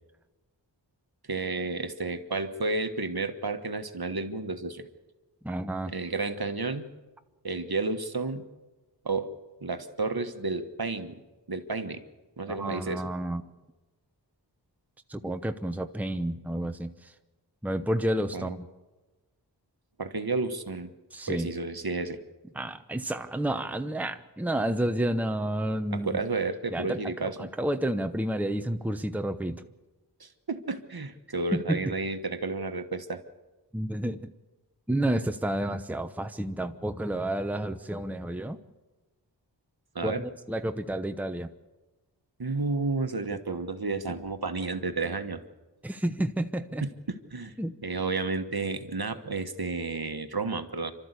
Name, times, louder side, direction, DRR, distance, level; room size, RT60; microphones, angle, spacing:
voice 1, 1.3-4.9 5.9-6.9 7.4-8.5 9.0-9.3 9.6-11.1 11.5-12.0 12.4-13.0 18.3-18.6 20.0-20.9 21.3-22.2 25.9-27.5 30.2-33.2 39.9-40.2 42.4-45.4 46.8-47.5 47.8-50.9, right 3 dB, 55° right, 8 dB, 1.4 m, -31 dB
voice 2, 5.4-5.9 12.5-13.4 15.1-17.1 17.6-18.7 21.1-21.5 22.5-26.2 26.7-29.6 31.5-31.9 33.7-34.3 34.9-38.6 40.0-41.5 43.3-43.4 45.8-46.8 47.6-47.8, right 1 dB, 5° right, 8 dB, 0.9 m, -30 dB
27.5 x 13.0 x 8.2 m, 1.2 s
wide cardioid pair, 40°, 43 cm